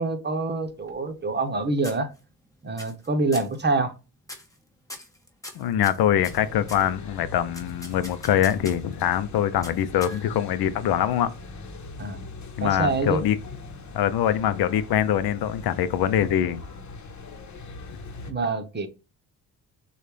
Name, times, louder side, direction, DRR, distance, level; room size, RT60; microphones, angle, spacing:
voice 1, 0.0-2.1 2.6-3.9 12.0-12.3 12.6-13.2 18.2-18.9, right 3 dB, 25° right, 1.1 m, -26 dB
sound 1, 0.6-1.5 1.8-2.4 2.8-3.1 3.3-3.6 4.2-4.6 4.9-6.9 7.5-8.9 9.6-10.5, left 1 dB, 10° left, 1.3 m, -42 dB
voice 2, 5.6-11.3 12.6-13.4 13.9-16.6, left 10 dB, 70° left, 0.7 m, -23 dB
sound 2, 6.2-18.3, left 3 dB, 45° left, 1.1 m, -41 dB
6.5 x 2.5 x 3.3 m
supercardioid pair, 70°, 39 cm